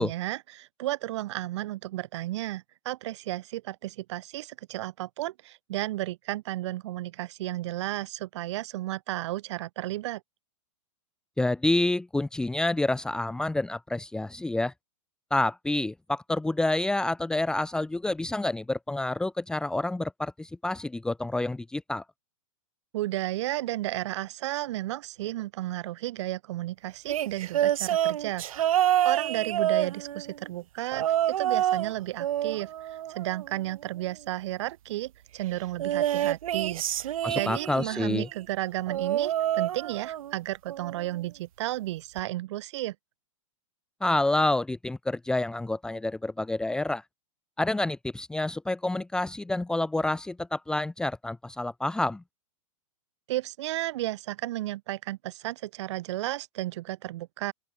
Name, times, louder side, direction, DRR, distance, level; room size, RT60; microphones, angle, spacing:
voice 1, 0.0-10.2 22.9-28.5 29.0-42.9 53.3-57.5, right 15 dB, 55° right, 4.9 m, -33 dB
voice 2, 11.4-14.7 15.3-22.0 37.2-38.3 44.0-47.0 47.6-52.2, left 2 dB, 5° left, 1.2 m, -28 dB
sound 1, 27.1-30.4 30.9-31.9 32.2-33.7 35.8-38.0 38.9-40.4 40.7-41.1 42.2-42.3, right 11 dB, 85° right, 0.5 m, -27 dB
open air
hypercardioid pair, 145°, 17 cm